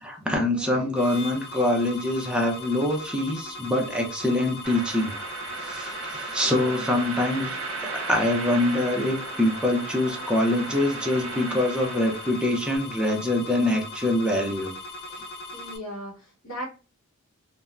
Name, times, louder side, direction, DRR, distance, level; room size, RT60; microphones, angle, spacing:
voice 1, 0.0-5.2 5.6-7.5 7.8-14.7, left 1 dB, 5° right, 0 dB, 0.6 m, -25 dB
voice 2, 0.5-0.9 6.5-6.7 6.9-7.2 15.5-16.6, equal, 80° left, -6 dB, 1.1 m, -38 dB
sound 1, 1.0-15.8, left 2 dB, 50° left, 0.5 m, -39 dB
sound 2, 4.6-12.7, right 4 dB, 70° right, 0.8 m, -36 dB
3.3 x 2.1 x 2.4 m, 0.34 s
head